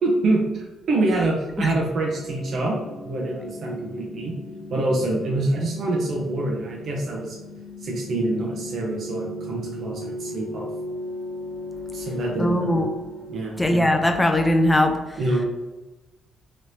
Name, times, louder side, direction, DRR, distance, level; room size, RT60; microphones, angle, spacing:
voice 1, 0.0-2.8 3.0-4.4 4.7-7.4 7.8-10.7 11.9-12.7 13.3-13.6 15.2-15.4, right 2 dB, 60° right, -2 dB, 0.8 m, -25 dB
sound 1, 1.4-14.1, left 1 dB, 35° right, 1.3 m, -37 dB
voice 2, 12.4-12.9 13.6-14.9, left 1 dB, 10° left, 4 dB, 0.5 m, -20 dB
3.1 x 2.6 x 3.3 m, 1.1 s
cardioid pair, 90°, 0 cm